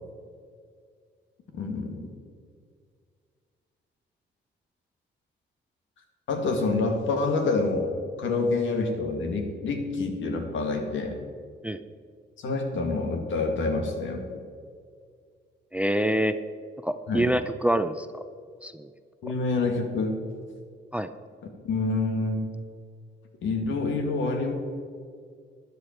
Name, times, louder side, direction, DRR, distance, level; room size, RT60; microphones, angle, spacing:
voice 1, 1.5-2.1 6.3-7.9 8.2-11.2 12.4-14.2 17.1-17.3 19.2-20.2 21.4-22.5 23.4-24.5, left 3 dB, 75° left, 4 dB, 2.1 m, -27 dB
voice 2, 15.7-16.4 16.8-18.1 18.6-18.9 20.9-21.1, right 1 dB, 5° right, 11 dB, 0.5 m, -25 dB
12.5 x 10.5 x 4.5 m, 2.1 s
cardioid pair, 90°, 20 cm